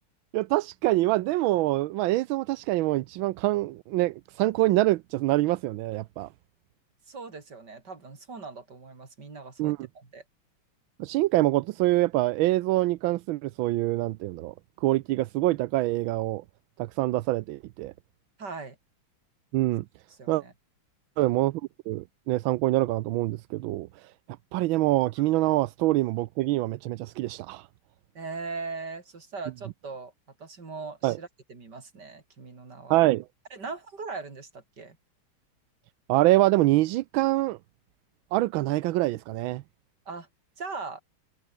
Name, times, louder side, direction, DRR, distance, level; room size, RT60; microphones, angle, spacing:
voice 1, 0.3-6.3 9.6-9.9 11.0-14.5 14.8-16.4 16.8-17.9 19.5-19.8 20.3-20.4 21.2-21.6 21.9-24.1 24.5-27.7 31.0-31.2 32.9-33.2 36.1-37.6 38.3-39.6, right 17 dB, 75° right, 1.3 m, -25 dB
voice 2, 7.1-10.2 18.4-18.8 20.1-20.5 28.1-30.1 30.4-33.0 33.5-35.0 40.1-40.3 40.6-41.0, right 4 dB, 50° right, 4.1 m, -40 dB
omnidirectional pair, 2.4 m